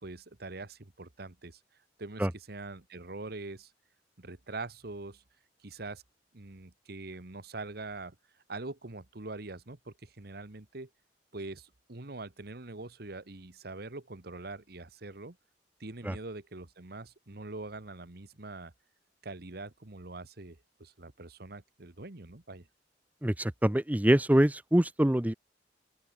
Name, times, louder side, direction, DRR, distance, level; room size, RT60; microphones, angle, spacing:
voice 1, 0.0-1.6 2.0-3.7 4.2-5.2 5.6-6.0 6.3-8.1 8.5-10.9 11.3-15.4 15.8-18.7 19.2-22.7, right 2 dB, 60° right, 1.6 m, -43 dB
voice 2, 23.2-25.3, right 1 dB, 10° right, 0.6 m, -25 dB
open air
head